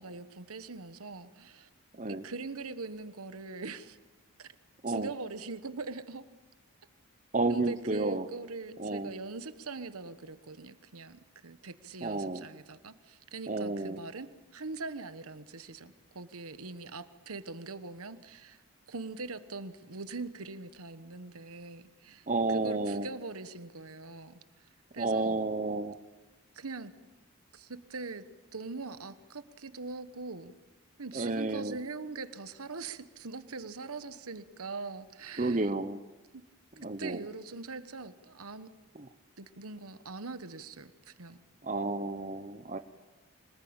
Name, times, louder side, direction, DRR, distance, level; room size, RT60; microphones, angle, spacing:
voice 1, 0.0-1.7 2.0-4.0 4.4-4.5 4.9-6.2 7.5-18.6 18.9-24.7 24.9-25.4 26.5-26.9 27.5-28.2 28.5-30.5 31.0-35.7 36.3-36.4 37.0-38.7 39.4-41.4, right 3 dB, 80° right, 12 dB, 1.2 m, -42 dB
voice 2, 1.9-2.2 4.8-5.1 7.3-8.3 8.8-9.1 12.0-12.4 13.5-14.0 22.3-23.1 25.0-25.9 31.1-31.8 35.4-36.0 36.8-37.2 41.6-42.8, right 2 dB, 35° right, 9 dB, 0.8 m, -31 dB
25.5 x 19.5 x 8.8 m, 1.1 s
head